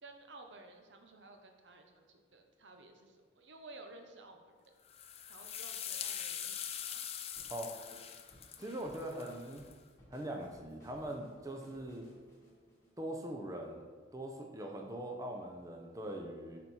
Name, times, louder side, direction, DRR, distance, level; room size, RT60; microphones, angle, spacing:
voice 1, 0.0-4.6 5.3-7.0, right 2 dB, 85° right, 4 dB, 0.8 m, -55 dB
sound 1, 4.9-9.7, left 9 dB, 35° left, 0.4 m, -43 dB
sound 2, 7.4-13.7, equal, 15° left, 1.8 m, -61 dB
voice 2, 8.6-9.6 10.1-12.1 13.0-13.8 14.1-16.6, right 1 dB, 20° right, 2 dB, 0.6 m, -42 dB
8.1 x 4.4 x 4.2 m, 1.5 s
head